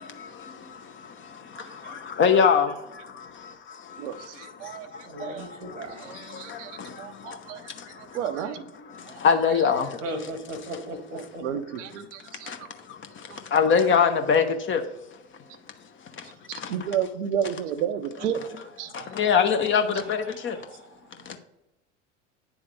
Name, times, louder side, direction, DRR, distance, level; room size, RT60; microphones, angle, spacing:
voice 1, 0.0-8.2 8.8-10.0 12.5-14.8 16.2-16.7 18.9-20.6 21.3-21.4, left 6 dB, 30° left, 0.8 m, -26 dB
voice 2, 1.6-2.0 4.0-5.5 6.0-6.7 7.0-7.7 8.0-8.6 9.1-9.2 11.1-12.5 13.3-13.4 16.5-19.5, right 9 dB, 70° right, 0.6 m, -32 dB
voice 3, 5.0-6.1 10.0-11.4 19.8-20.9 21.2-21.3, right 1 dB, 90° right, 1.2 m, -37 dB
9.3 x 3.5 x 3.3 m
hypercardioid pair, 70°, 37 cm